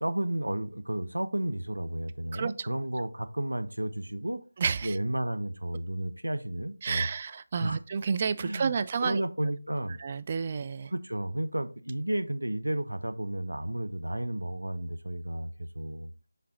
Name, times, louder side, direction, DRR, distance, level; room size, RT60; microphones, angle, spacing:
voice 1, 0.0-4.4 4.8-7.1 7.6-7.8 8.4-8.7 9.0-10.0 10.9-16.1, right 1 dB, 85° right, 0.6 m, -32 dB
voice 2, 2.3-2.7 4.6-5.0 6.8-9.2 10.0-10.9, right 6 dB, 30° right, 0.3 m, -30 dB
7.5 x 3.4 x 3.8 m
figure-of-eight pair, 160°, 0 cm